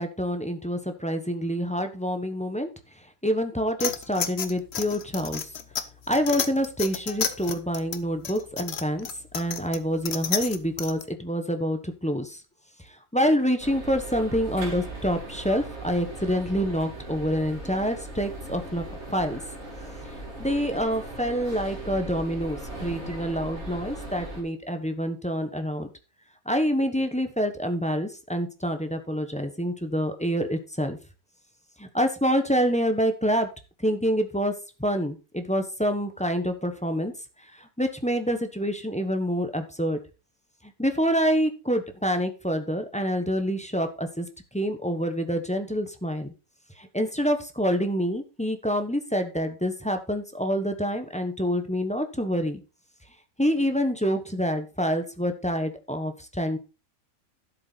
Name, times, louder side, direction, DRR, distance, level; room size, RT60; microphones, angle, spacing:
voice 1, 0.0-2.7 3.2-5.5 6.1-9.1 9.3-12.4 12.8-19.4 20.4-25.9 26.4-31.0 31.8-33.5 33.8-34.5 34.8-37.1 37.5-40.0 40.6-44.3 44.5-46.3 46.8-52.6 53.4-56.6, equal, 5° left, 6 dB, 1.0 m, -27 dB
sound 1, 3.8-11.0, left 7 dB, 50° left, 1.1 m, -32 dB
sound 2, 13.6-24.4, right 2 dB, 50° right, 3.5 m, -38 dB
12.0 x 7.4 x 4.1 m, 0.32 s
omnidirectional pair, 1.5 m